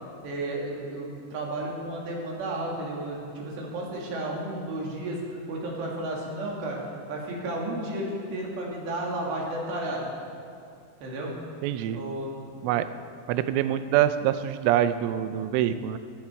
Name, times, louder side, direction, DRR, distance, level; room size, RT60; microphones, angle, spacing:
voice 1, 0.2-6.8 7.1-10.1 11.0-11.4 11.9-12.7, right 1 dB, 60° right, -2 dB, 4.5 m, -33 dB
voice 2, 11.6-12.0 12.6-12.9 13.3-16.0, right 11 dB, 80° right, 11 dB, 3.0 m, -25 dB
17.5 x 16.5 x 4.7 m, 2.3 s
omnidirectional pair, 5.9 m